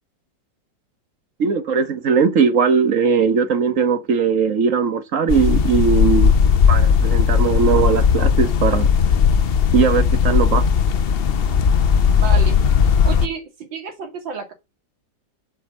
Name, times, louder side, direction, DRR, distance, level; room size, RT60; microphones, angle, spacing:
voice 1, 1.4-6.3 6.7-8.9 9.7-10.7, right 6 dB, 50° right, 1.3 m, -19 dB
sound 1, 5.3-13.3, left 7 dB, 80° left, 0.5 m, -16 dB
voice 2, 12.1-12.6 13.0-14.5, right 6 dB, 85° right, 3.1 m, -30 dB
7.9 x 5.4 x 7.3 m
omnidirectional pair, 2.0 m